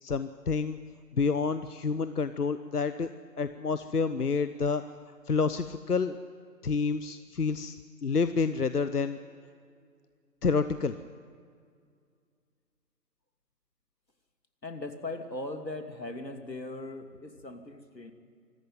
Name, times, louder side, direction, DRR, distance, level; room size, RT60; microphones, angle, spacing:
voice 1, 0.0-0.8 1.1-3.1 3.4-4.8 5.3-6.2 6.6-9.2 10.4-11.0, left 5 dB, 65° left, 12 dB, 0.9 m, -28 dB
voice 2, 14.6-18.1, left 2 dB, 90° left, 6 dB, 2.8 m, -39 dB
25.5 x 14.5 x 9.2 m, 2.2 s
figure-of-eight pair, 160°, 49 cm